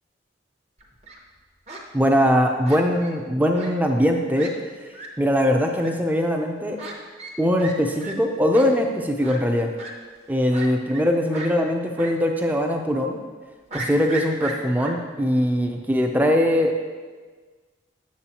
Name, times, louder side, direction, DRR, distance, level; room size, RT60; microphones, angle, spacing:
Fowl, 0.8-1.2 1.7-1.8 2.6-3.1 3.5-3.7 4.0-4.1 4.3-4.5 4.9-5.1 5.8-5.9 6.8-6.9 7.2-7.3 7.6-7.7 8.0-8.1 8.5-8.7 9.2-9.4 9.8-9.9 10.5-11.1 11.3-11.5 12.0-12.1 12.4-12.5 13.7-14.9, right 3 dB, 35° right, 0.8 m, -35 dB
voice 1, 1.9-4.5 5.2-6.8 7.4-9.7 10.3-13.2 13.7-16.8, equal, 10° right, 3 dB, 0.5 m, -21 dB
8.4 x 6.9 x 2.9 m, 1.4 s
head